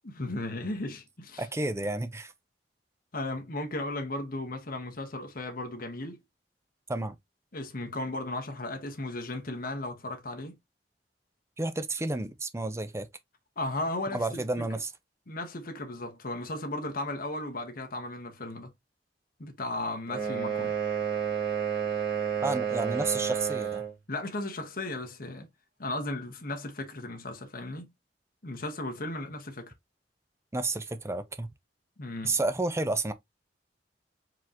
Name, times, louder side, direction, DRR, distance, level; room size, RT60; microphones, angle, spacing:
voice 1, 0.0-1.5 3.1-6.2 7.5-10.6 13.6-14.4 15.3-18.7 19.4-20.7 24.1-25.5 25.8-27.9 28.4-29.7 32.0-32.4, left 2 dB, 55° left, 1.2 m, -35 dB
voice 2, 1.4-2.3 6.9-7.1 11.6-13.1 14.1-14.9 22.4-23.8 30.5-31.5 32.2-33.1, right 2 dB, 15° right, 0.6 m, -31 dB
sound 1, 20.1-24.0, right 7 dB, 55° right, 2.5 m, -30 dB
4.9 x 3.8 x 2.9 m
head